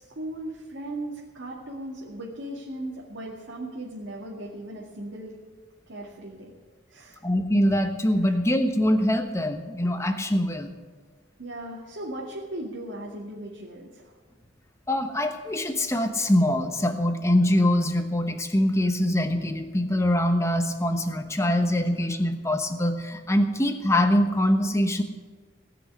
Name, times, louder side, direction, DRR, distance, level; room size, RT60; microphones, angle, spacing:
voice 1, 0.0-5.3 5.9-6.5 6.9-7.2 8.2-8.4 11.4-14.1, right 1 dB, 90° right, -4 dB, 2.3 m, -37 dB
voice 2, 7.2-10.7 14.9-25.0, left 1 dB, 15° left, 6 dB, 1.1 m, -23 dB
18.0 x 6.1 x 9.7 m, 1.4 s
head